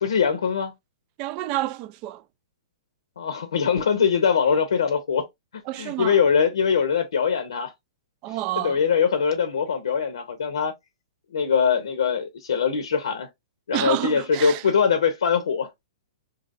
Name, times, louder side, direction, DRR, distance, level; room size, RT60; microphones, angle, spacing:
voice 1, 0.0-0.7 3.2-5.3 5.5-7.7 8.3-10.7 11.3-13.3 13.7-15.7, left 6 dB, 80° left, 0.7 m, -22 dB
voice 2, 1.2-2.2 5.7-6.2 8.2-8.8 13.7-14.6, right 15 dB, 40° right, 0.4 m, -29 dB
4.0 x 2.8 x 2.5 m
hypercardioid pair, 130°, 3 cm